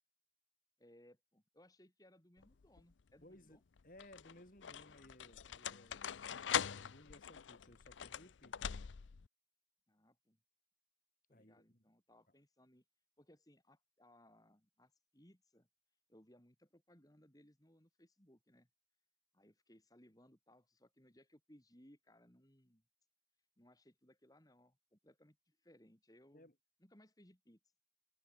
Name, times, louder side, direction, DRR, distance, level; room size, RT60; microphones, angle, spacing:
voice 1, 0.8-3.6 9.9-10.4 11.3-12.8 13.2-15.7 16.1-18.7 19.3-22.8 23.6-26.5 26.8-27.6, left 1 dB, 20° left, 3.9 m, -66 dB
sound 1, 2.4-2.9 3.8-9.3, left 8 dB, 85° left, 0.6 m, -42 dB
voice 2, 3.2-3.6 3.8-8.8 11.3-11.8 26.3-26.6, left 1 dB, 45° left, 5.8 m, -61 dB
head